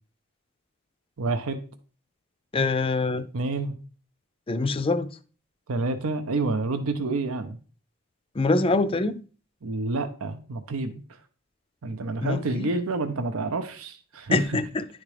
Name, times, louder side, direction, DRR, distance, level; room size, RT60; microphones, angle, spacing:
voice 1, 1.2-1.6 3.3-3.7 5.7-7.6 9.6-11.0 11.8-14.4, right 3 dB, 75° right, 0.6 m, -28 dB
voice 2, 2.5-3.3 4.5-5.1 8.3-9.2 12.2-12.7 14.3-14.9, left 3 dB, 25° left, 0.4 m, -24 dB
11.0 x 3.6 x 3.3 m
head